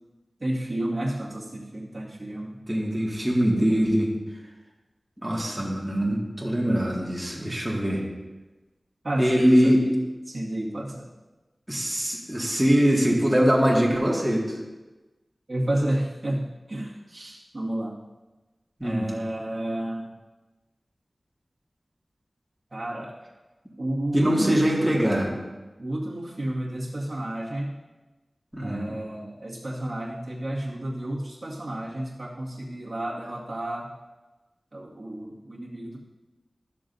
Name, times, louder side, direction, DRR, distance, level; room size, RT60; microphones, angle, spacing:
voice 1, 0.4-2.6 9.0-11.1 15.5-18.0 18.8-20.1 22.7-23.1 23.8-25.5 25.8-27.8 28.6-33.9 34.7-36.0, right 1 dB, 45° right, -5 dB, 2.0 m, -31 dB
voice 2, 2.7-4.1 5.2-8.0 9.2-9.8 11.7-14.4 18.8-19.1 24.1-25.3 28.5-28.8, equal, 15° right, -3 dB, 2.0 m, -22 dB
13.5 x 6.7 x 2.7 m, 1.1 s
wide cardioid pair, 65°, 0 cm